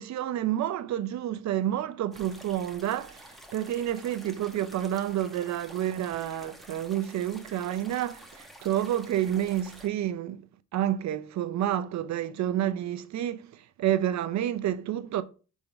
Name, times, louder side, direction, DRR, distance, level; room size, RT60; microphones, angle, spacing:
voice 1, 0.0-10.5 10.7-15.2, right 11 dB, 65° right, 0.7 m, -29 dB
sound 1, 2.1-9.9, equal, ahead, 1.3 m, -50 dB
5.0 x 3.6 x 5.2 m
cardioid pair, 90°, 30 cm